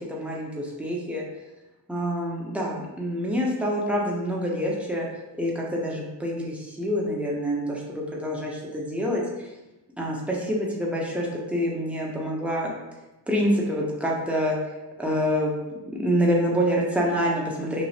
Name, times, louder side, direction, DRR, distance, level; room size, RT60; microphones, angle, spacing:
voice 1, 0.1-1.2 1.9-5.1 5.4-9.5 10.0-12.7 13.3-14.6 15.0-15.5 15.9-17.9, equal, 5° right, -3 dB, 0.6 m, -26 dB
3.0 x 2.4 x 2.7 m, 1.0 s
cardioid pair, 90°, 44 cm